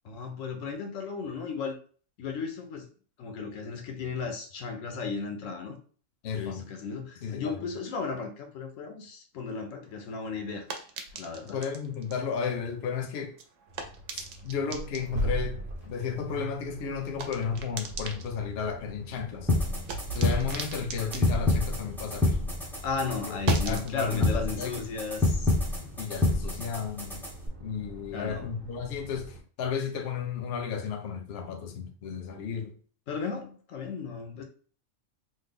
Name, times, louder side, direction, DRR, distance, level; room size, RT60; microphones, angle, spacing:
voice 1, 0.0-1.8 2.2-2.9 3.2-5.8 6.4-10.7 11.1-11.6 22.8-25.5 28.1-28.5 33.1-34.4, left 5 dB, 90° left, 1.1 m, -35 dB
voice 2, 6.2-6.6 7.2-7.8 11.5-13.4 14.1-15.6 15.9-19.5 20.1-22.4 23.3-23.4 23.7-24.9 26.0-27.3 27.6-32.7, left 6 dB, 60° left, 0.8 m, -33 dB
sound 1, 9.8-22.6 22.9-26.1, right 5 dB, 80° right, 1.0 m, -43 dB
Accelerating revving vroom, 13.7-29.4, right 1 dB, 50° right, 0.8 m, -40 dB
sound 2, 19.5-27.5, left 2 dB, 5° left, 0.5 m, -28 dB
3.2 x 2.1 x 3.5 m
omnidirectional pair, 1.3 m